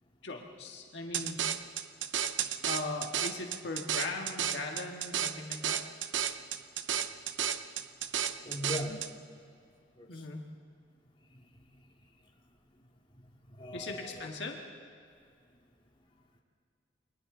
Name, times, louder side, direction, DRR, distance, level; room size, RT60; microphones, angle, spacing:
voice 1, 0.2-1.4 2.6-5.8 10.1-10.5 13.7-14.6, left 2 dB, 65° left, 1 dB, 1.8 m, -39 dB
sound 1, 1.1-9.1, right 9 dB, 75° right, 0.7 m, -33 dB
voice 2, 8.4-9.0 10.0-10.2 13.5-14.3, left 1 dB, 25° left, -1 dB, 2.2 m, -39 dB
29.5 x 23.0 x 3.9 m, 2.3 s
head